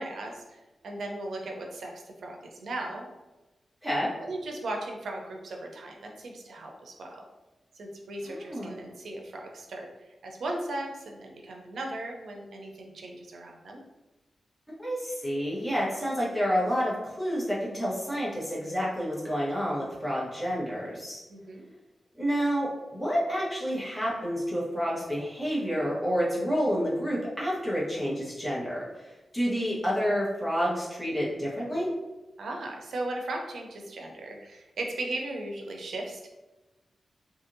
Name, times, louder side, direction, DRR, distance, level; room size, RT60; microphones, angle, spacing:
voice 1, 0.0-3.1 4.2-7.2 7.8-13.8 21.3-21.6 32.4-36.3, right 2 dB, 80° right, 1 dB, 0.5 m, -37 dB
voice 2, 8.2-8.7 14.7-21.2 22.2-31.9, equal, 5° left, -7 dB, 1.0 m, -29 dB
2.7 x 2.6 x 2.6 m, 1.1 s
wide cardioid pair, 95°, 0 cm